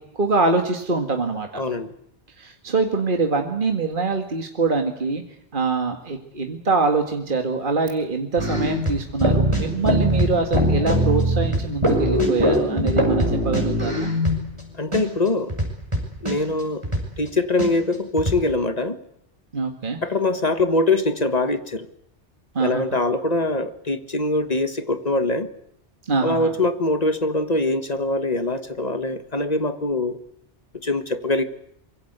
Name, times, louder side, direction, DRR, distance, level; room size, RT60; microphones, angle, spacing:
voice 1, 0.0-1.6 2.4-5.2 5.5-14.1 19.5-20.0 22.5-23.0 26.0-26.5, right 3 dB, 50° right, 4 dB, 2.1 m, -24 dB
voice 2, 1.5-1.9 14.8-15.6 16.2-16.8 17.2-19.0 20.0-21.9 22.6-25.5 26.2-30.2 30.8-31.4, left 2 dB, 35° left, 11 dB, 1.6 m, -23 dB
sound 1, 8.4-14.6 14.9-15.0 15.3-17.3 17.6-17.7 17.9-18.4, equal, 25° right, 6.1 m, -21 dB
25.0 x 23.0 x 8.1 m, 0.76 s
omnidirectional pair, 1.1 m